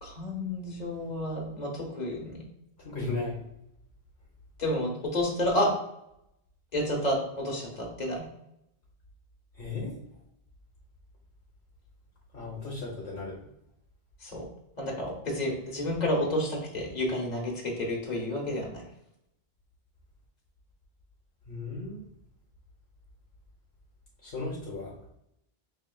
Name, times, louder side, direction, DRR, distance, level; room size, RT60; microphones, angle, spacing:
voice 1, 0.0-2.4 4.6-5.7 6.7-8.3 14.2-14.4 14.8-18.8, left 1 dB, 45° left, -1 dB, 1.3 m, -30 dB
voice 2, 2.8-3.4 9.6-10.0 12.3-13.4 21.5-22.0 24.2-24.9, left 3 dB, 65° left, -4 dB, 1.1 m, -35 dB
5.5 x 3.1 x 2.2 m, 0.79 s
omnidirectional pair, 1.1 m